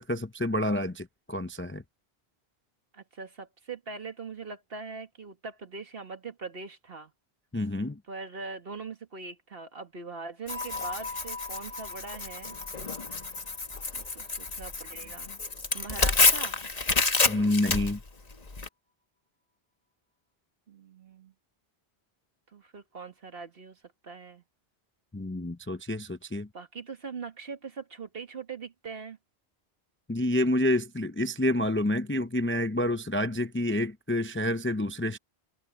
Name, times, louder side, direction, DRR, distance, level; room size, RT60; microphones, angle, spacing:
voice 1, 0.0-1.8 7.5-8.0 17.3-18.0 25.1-26.5 30.1-35.2, left 1 dB, 15° left, 0.4 m, -28 dB
voice 2, 2.9-7.1 8.1-12.6 13.9-15.3 15.7-16.6 20.7-21.3 22.5-24.4 26.5-29.2, right 4 dB, 65° right, 1.9 m, -41 dB
Tearing, 10.5-18.7, left 3 dB, 40° left, 1.4 m, -29 dB
sound 1, 10.5-15.1, left 3 dB, 35° right, 1.3 m, -42 dB
omnidirectional pair, 1.1 m